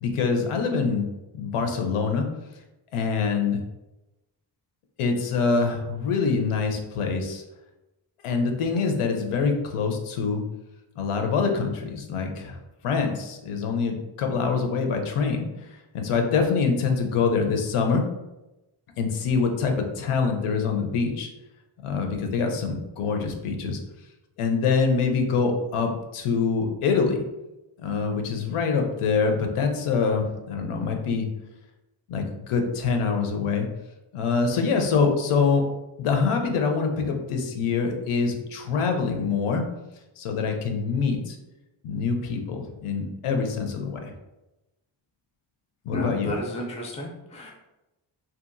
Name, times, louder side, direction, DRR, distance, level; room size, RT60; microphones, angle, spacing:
voice 1, 0.0-1.1 1.3-2.3 2.9-3.6 5.0-7.4 8.2-10.4 11.0-12.6 12.8-15.5 15.9-18.0 19.0-21.3 21.8-23.8 24.4-27.2 27.8-31.3 32.1-33.7 34.1-35.6 36.0-39.6 40.2-41.4 41.8-44.1 45.9-46.3, left 5 dB, 85° left, 4 dB, 0.6 m, -25 dB
voice 2, 45.9-47.5, equal, 15° left, -1 dB, 0.3 m, -32 dB
2.8 x 2.3 x 2.5 m, 0.99 s
wide cardioid pair, 160°, 50 cm